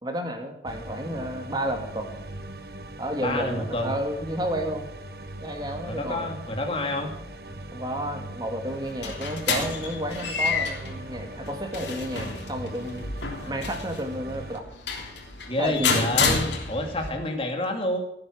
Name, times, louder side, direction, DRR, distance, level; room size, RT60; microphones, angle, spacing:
voice 1, 0.0-2.1 3.0-4.9 5.4-6.3 7.7-13.1 13.5-14.6 15.6-16.0, right 1 dB, 25° right, 4 dB, 2.4 m, -31 dB
sound 1, 0.6-14.6, right 1 dB, 55° right, 1.4 m, -40 dB
voice 2, 3.2-3.9 5.9-7.1 13.3-13.6 15.5-18.0, left 1 dB, 30° left, 3 dB, 2.6 m, -28 dB
sound 2, 8.7-17.1, left 4 dB, 90° left, 3.4 m, -30 dB
17.5 x 9.0 x 6.2 m, 0.76 s
head